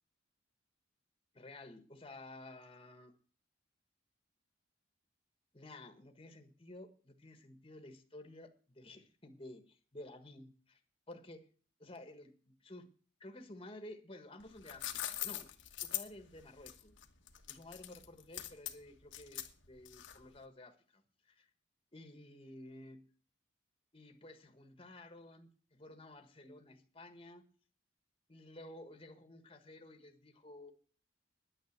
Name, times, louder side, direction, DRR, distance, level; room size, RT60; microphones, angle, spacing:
voice 1, 1.3-3.1 5.5-10.8 11.1-11.4 11.8-12.9 13.2-15.5 15.8-17.0 17.5-21.5 21.9-23.0 23.9-27.4 28.3-30.7, left 1 dB, 30° left, 7 dB, 1.5 m, -53 dB
sound 1, 14.4-20.4, left 13 dB, 75° left, 1.2 m, -42 dB
10.5 x 9.0 x 8.0 m, 0.42 s
head